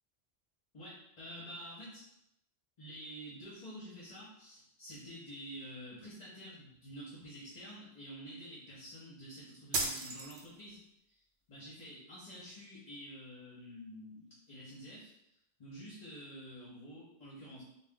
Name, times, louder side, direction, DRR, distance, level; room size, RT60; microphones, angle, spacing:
voice 1, 0.7-2.1 2.8-10.8 11.1-11.2 11.5-15.1 15.6-17.6, equal, 40° left, -9 dB, 1.0 m, -49 dB
sound 1, 9.7-10.8, right 3 dB, 80° right, 0.8 m, -35 dB
2.4 x 2.3 x 3.6 m, 0.79 s
omnidirectional pair, 1.1 m